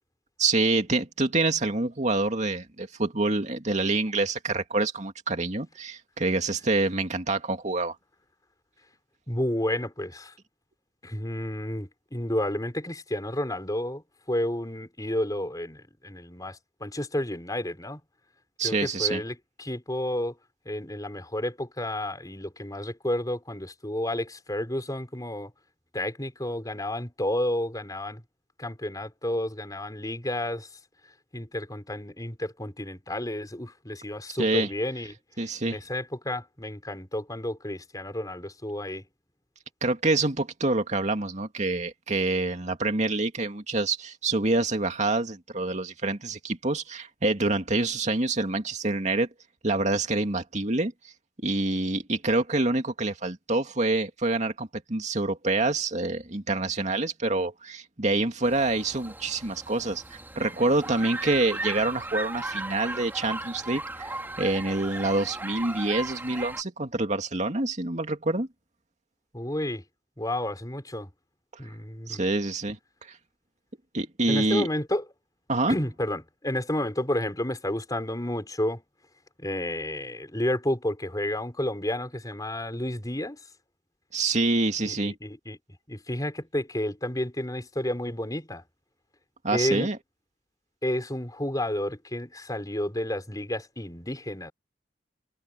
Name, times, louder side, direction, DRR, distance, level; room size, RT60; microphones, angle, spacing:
voice 1, 0.4-7.9 18.6-19.2 34.4-34.7 35.4-35.8 39.8-49.3 49.6-50.9 51.4-64.1 64.4-68.5 72.1-72.8 73.9-74.7 75.5-75.7 84.1-85.1 89.4-90.0, right 2 dB, 40° right, 2.3 m, -26 dB
voice 2, 9.3-10.3 11.0-18.0 18.6-20.3 20.6-25.5 25.9-28.2 28.6-30.7 31.3-35.1 35.6-39.0 69.3-69.8 70.2-71.1 71.6-72.2 74.3-75.0 75.7-78.8 79.4-83.4 84.8-85.6 85.9-88.6 89.5-89.9 90.8-94.5, left 1 dB, 20° left, 5.0 m, -31 dB
sound 1, 58.4-66.6, right 2 dB, 10° right, 3.6 m, -37 dB
head